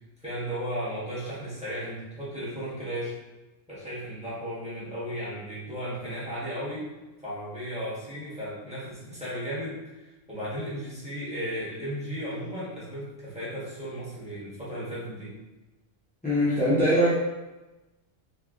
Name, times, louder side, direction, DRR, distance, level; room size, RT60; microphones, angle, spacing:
voice 1, 0.2-3.2 3.7-6.9 7.2-15.3, equal, 5° right, -10 dB, 1.1 m, -35 dB
voice 2, 16.2-17.1, equal, 10° left, -11 dB, 0.4 m, -22 dB
3.3 x 3.2 x 2.4 m, 1.1 s
omnidirectional pair, 1.3 m